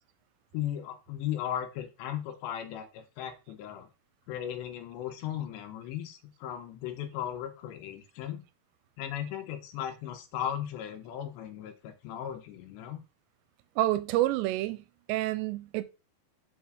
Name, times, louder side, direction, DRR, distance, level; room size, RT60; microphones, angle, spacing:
voice 1, 0.5-3.9 4.3-8.4 9.0-13.0, left 10 dB, 90° left, 3.3 m, -37 dB
voice 2, 13.8-15.8, right 15 dB, 85° right, 2.9 m, -28 dB
7.0 x 3.5 x 6.3 m
omnidirectional pair, 5.0 m